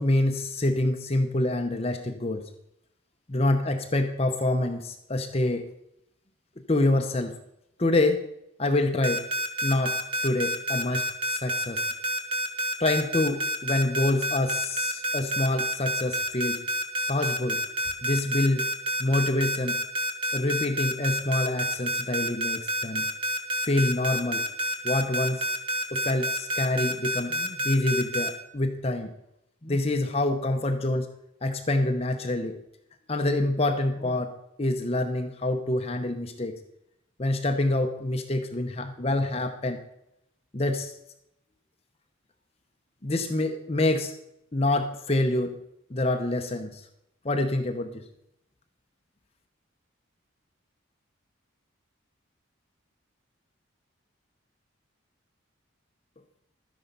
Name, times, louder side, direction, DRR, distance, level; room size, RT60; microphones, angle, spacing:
voice 1, 0.0-2.5 3.3-5.7 6.7-7.4 7.8-8.2 8.6-9.3 9.6-11.9 12.8-16.6 17.1-17.6 18.0-18.6 19.0-19.8 20.3-23.0 23.6-24.5 24.8-25.5 25.9-29.1 29.6-31.1 31.4-32.6 33.1-34.3 34.6-36.6 37.2-39.8 40.5-40.9 43.0-44.1 44.5-45.6 45.9-46.8 47.2-48.0, left 2 dB, 30° left, 6 dB, 0.8 m, -26 dB
sound 1, 9.0-28.3, equal, 25° right, 1.2 m, -28 dB
12.5 x 10.0 x 5.3 m, 0.82 s
head